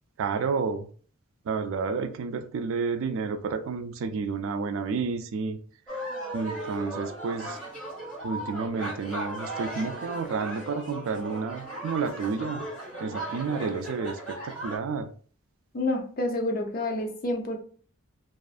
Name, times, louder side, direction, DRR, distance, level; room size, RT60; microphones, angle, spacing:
voice 1, 0.2-0.9 1.5-5.6 6.3-7.6 8.2-12.6 13.0-15.1, right 5 dB, 70° right, 9 dB, 0.3 m, -30 dB
sound 1, 5.9-14.8, right 1 dB, 5° left, 1.2 m, -37 dB
voice 2, 15.7-17.6, left 2 dB, 45° left, 4 dB, 0.5 m, -28 dB
2.4 x 2.4 x 2.4 m, 0.43 s
head